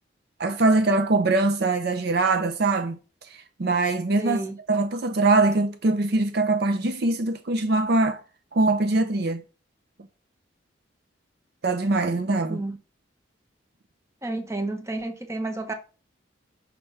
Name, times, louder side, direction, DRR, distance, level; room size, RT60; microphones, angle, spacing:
voice 1, 0.4-3.0 3.6-4.4 4.7-8.2 8.5-9.4 11.6-12.6, right 2 dB, 55° right, 0.6 m, -22 dB
voice 2, 4.2-4.6 12.5-12.8 14.2-15.7, right 2 dB, 15° right, 0.9 m, -31 dB
5.9 x 3.5 x 5.4 m
head